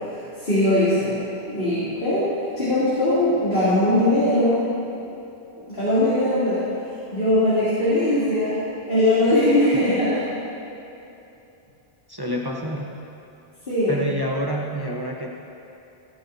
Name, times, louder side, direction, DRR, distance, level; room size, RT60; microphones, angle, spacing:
voice 1, 0.1-1.2 1.5-4.7 5.7-6.6 7.1-8.6 8.9-10.2 13.7-14.0, left 1 dB, 60° left, -13 dB, 3.3 m, -20 dB
voice 2, 12.1-13.0 13.9-15.3, equal, 25° right, -2 dB, 0.8 m, -28 dB
17.5 x 10.5 x 2.8 m, 2.8 s
omnidirectional pair, 1.1 m